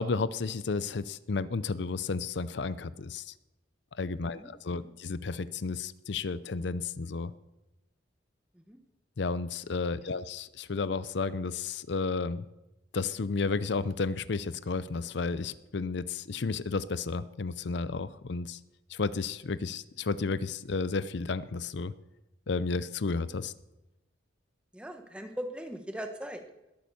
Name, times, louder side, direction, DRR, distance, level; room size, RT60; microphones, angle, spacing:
voice 1, 0.0-3.3 4.0-7.3 9.2-12.5 12.9-18.6 18.9-21.9 22.5-23.5, left 4 dB, 60° left, 16 dB, 0.5 m, -32 dB
voice 2, 24.7-26.4, equal, 5° right, 6 dB, 1.2 m, -40 dB
20.5 x 8.8 x 7.0 m, 0.99 s
head